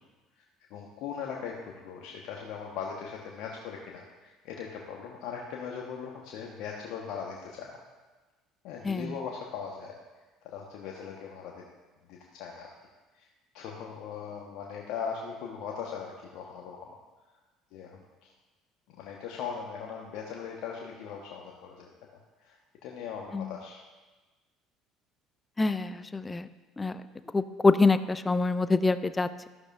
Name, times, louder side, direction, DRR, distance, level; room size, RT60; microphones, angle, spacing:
voice 1, 0.7-7.7 8.6-10.0 10.4-11.6 12.1-12.7 13.2-13.3 13.5-17.0 17.7-18.3 18.9-22.6 22.8-23.8, left 6 dB, 65° left, -1 dB, 1.2 m, -39 dB
voice 2, 8.8-9.2 23.3-23.5 25.6-26.5 26.8-27.0 27.3-29.5, left 3 dB, 20° left, 13 dB, 0.6 m, -26 dB
13.5 x 11.5 x 2.6 m, 1.2 s
hypercardioid pair, 60°, 0 cm